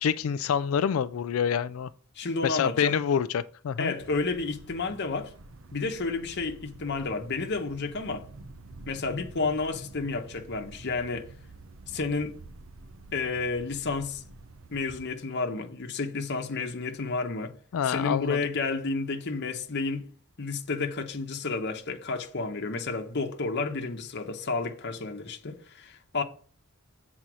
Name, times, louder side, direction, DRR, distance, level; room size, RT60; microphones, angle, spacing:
voice 1, 0.0-1.9 2.4-3.9 17.7-18.4, left 7 dB, 75° left, 0.3 m, -27 dB
voice 2, 2.2-2.9 3.8-5.3 5.7-8.3 8.9-11.3 11.9-12.3 13.1-14.2 14.7-17.5 17.8-20.1 20.4-26.2, left 3 dB, 55° left, 0.9 m, -31 dB
sound 1, 4.0-15.0, right 2 dB, 70° right, 0.9 m, -48 dB
7.7 x 4.2 x 6.1 m
head